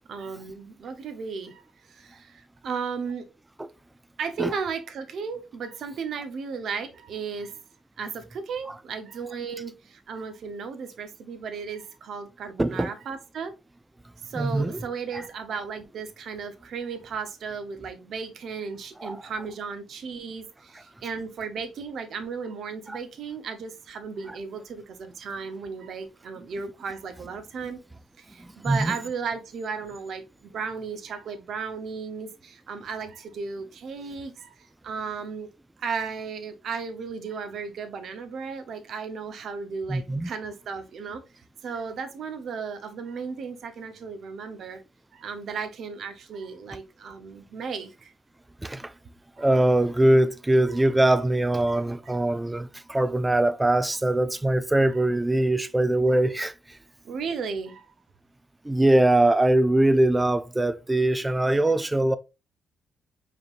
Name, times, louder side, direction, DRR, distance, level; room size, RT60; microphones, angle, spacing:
voice 1, 0.1-1.6 1.9-3.3 4.2-7.6 8.0-13.5 14.2-27.8 28.2-35.5 35.8-41.2 41.6-44.8 45.1-48.1 49.4-49.5 51.7-51.8 57.0-57.9, right 5 dB, 65° right, 0.8 m, -35 dB
voice 2, 12.6-12.9 14.4-14.8 15.1-15.2 19.0-19.2 22.9-23.0 28.4-29.0 39.9-40.3 48.6-48.9 49.4-56.8 58.6-62.2, right 1 dB, 15° right, 0.4 m, -22 dB
5.0 x 3.1 x 2.4 m
cardioid pair, 90°, 0 cm